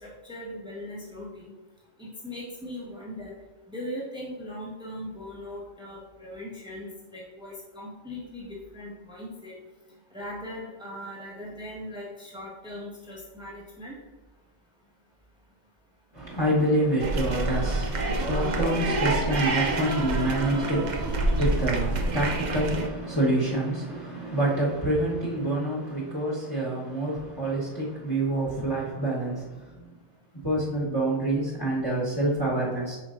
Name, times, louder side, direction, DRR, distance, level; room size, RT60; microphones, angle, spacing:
voice 1, 0.0-1.5 2.0-3.3 3.7-9.6 10.1-13.9, left 1 dB, 5° right, -5 dB, 1.4 m, -39 dB
voice 2, 16.1-29.9 30.4-33.0, right 1 dB, 20° left, -6 dB, 1.3 m, -27 dB
sound 1, 17.0-22.9, right 2 dB, 50° right, 0.6 m, -27 dB
7.4 x 5.0 x 2.6 m, 1.2 s
omnidirectional pair, 1.2 m